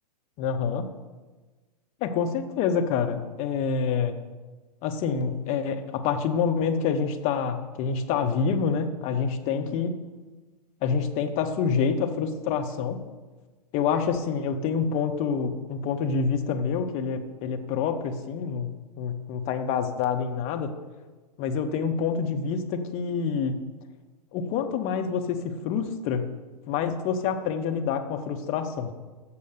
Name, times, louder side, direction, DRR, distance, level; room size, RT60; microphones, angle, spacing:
voice 1, 0.4-0.9 2.0-4.2 4.8-10.0 10.8-13.0 13.7-18.7 19.0-20.7 21.4-23.6 24.3-26.3 26.7-28.9, left 6 dB, 35° left, 6 dB, 0.9 m, -27 dB
6.9 x 6.6 x 6.7 m, 1.3 s
hypercardioid pair, 115°, 21 cm